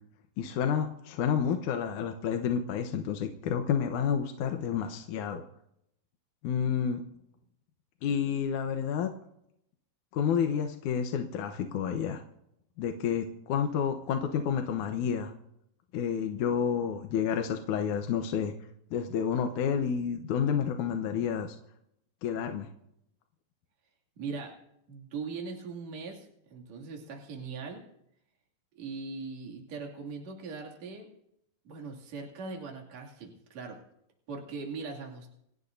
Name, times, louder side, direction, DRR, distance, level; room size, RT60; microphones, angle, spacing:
voice 1, 0.4-5.4 6.4-7.0 8.0-9.1 10.1-12.2 12.8-15.3 15.9-18.5 18.9-21.6 22.2-22.7, left 7 dB, 70° left, 5 dB, 2.2 m, -30 dB
voice 2, 24.2-24.5 24.9-27.8 28.7-31.1 31.6-33.8 34.3-35.3, right 4 dB, 50° right, 0 dB, 3.5 m, -40 dB
29.0 x 16.0 x 2.7 m, 0.76 s
omnidirectional pair, 4.2 m